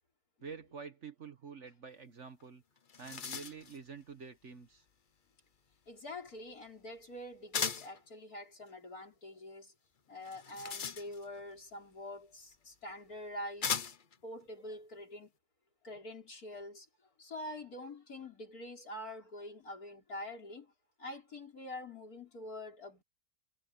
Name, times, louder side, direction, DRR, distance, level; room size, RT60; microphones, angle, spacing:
voice 1, 0.4-2.6 3.0-4.8, right 5 dB, 50° right, 1.4 m, -48 dB
sound 1, 2.4-2.5 2.8-3.8 7.5-8.0 10.2-11.4 12.5-12.6 13.6-14.2, left 6 dB, 40° left, 0.8 m, -37 dB
voice 2, 5.9-9.7 10.1-13.8 14.2-15.3 15.8-16.9 17.2-20.7 21.0-23.0, left 1 dB, 60° left, 5.3 m, -45 dB
omnidirectional pair, 1.8 m